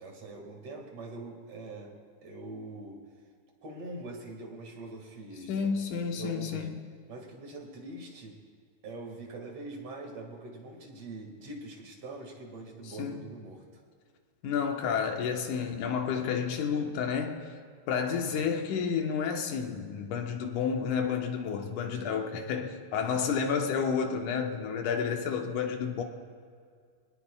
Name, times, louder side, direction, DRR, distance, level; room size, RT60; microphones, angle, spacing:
voice 1, 0.0-1.9 2.2-3.0 3.6-5.7 6.2-6.7 7.1-8.4 8.8-13.6 18.2-18.6 21.9-22.2, right 2 dB, 55° right, 3.1 m, -43 dB
voice 2, 5.5-6.8 12.8-13.2 14.4-17.5 17.9-26.0, left 6 dB, 85° left, 2.7 m, -30 dB
26.0 x 19.0 x 2.4 m
omnidirectional pair, 3.5 m